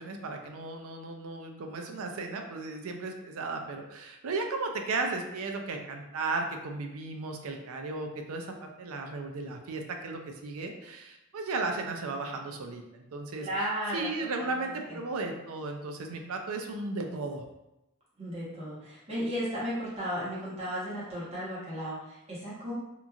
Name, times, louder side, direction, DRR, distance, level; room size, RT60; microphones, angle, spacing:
voice 1, 0.0-13.5 13.9-17.4, right 3 dB, 75° right, 4 dB, 0.4 m, -35 dB
voice 2, 13.4-14.1 14.4-14.5 14.9-15.0 18.2-22.7, equal, 25° right, -9 dB, 1.0 m, -34 dB
2.9 x 2.5 x 2.3 m, 0.91 s
head